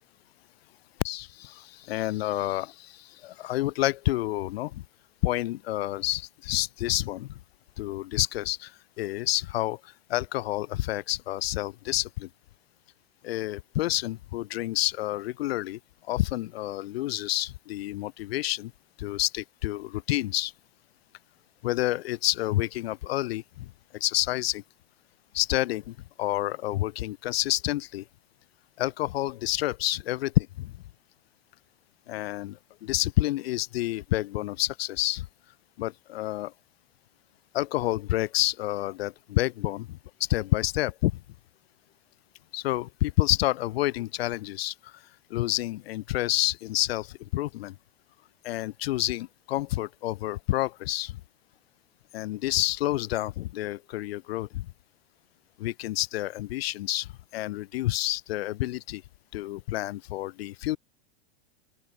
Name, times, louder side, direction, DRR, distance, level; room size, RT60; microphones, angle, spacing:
voice 1, 1.0-2.9 3.2-4.8 5.2-7.3 7.8-8.7 9.0-9.8 10.1-12.3 13.2-15.8 16.1-18.7 19.0-20.5 21.6-23.7 24.0-24.6 25.3-28.0 28.8-30.7 32.1-35.2 35.8-36.5 37.5-39.9 40.3-41.1 42.5-44.7 45.3-47.7 48.4-51.1 52.1-54.7 55.6-59.0 59.3-60.8, left 16 dB, 65° left, 2.4 m, -29 dB
open air
supercardioid pair, 160°, 33 cm